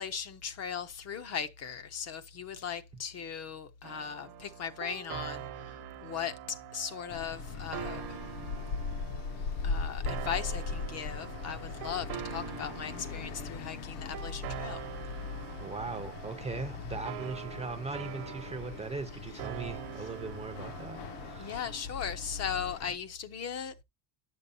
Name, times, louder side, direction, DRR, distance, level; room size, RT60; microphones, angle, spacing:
voice 1, 0.0-8.2 9.6-14.9 21.4-23.8, left 7 dB, 35° left, 0.5 m, -38 dB
sound 1, 3.8-21.8, right 10 dB, 55° right, 0.8 m, -44 dB
sound 2, 7.1-23.0, left 5 dB, 65° left, 0.7 m, -39 dB
voice 2, 15.6-21.6, right 4 dB, 15° right, 0.4 m, -39 dB
10.5 x 6.7 x 2.6 m
cardioid pair, 170°, 45 cm